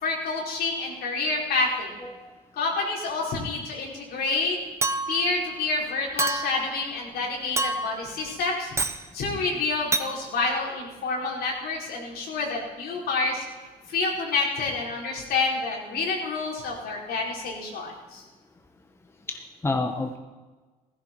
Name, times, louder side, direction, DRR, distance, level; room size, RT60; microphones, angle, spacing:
voice 1, 0.0-1.9 2.6-4.6 5.1-8.7 9.1-13.4 13.9-18.2, left 3 dB, 70° left, -2 dB, 4.9 m, -28 dB
voice 2, 2.0-2.3 19.3-20.2, left 3 dB, 15° left, 5 dB, 1.1 m, -29 dB
Chink clink, 4.8-5.3 6.2-6.7 7.6-8.1 8.8-9.0 9.9-10.1, right 3 dB, 15° right, 0.9 m, -27 dB
16.5 x 14.5 x 4.7 m, 1.3 s
cardioid pair, 110°, 17 cm